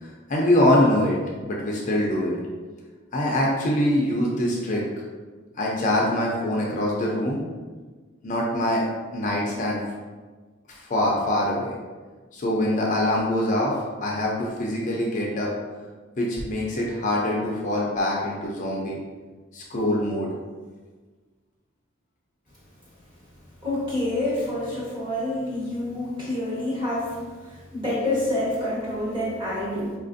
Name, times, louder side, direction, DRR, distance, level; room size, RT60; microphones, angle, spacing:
voice 1, 0.0-1.2 1.4-2.4 3.1-4.8 5.6-7.4 8.2-8.9 9.1-9.8 10.7-11.7 12.3-15.5 16.2-19.0 19.5-20.3, left 1 dB, 40° left, -3 dB, 0.5 m, -24 dB
voice 2, 23.6-27.2 27.5-30.0, left 1 dB, 25° right, -8 dB, 1.3 m, -27 dB
4.2 x 2.5 x 2.5 m, 1.4 s
head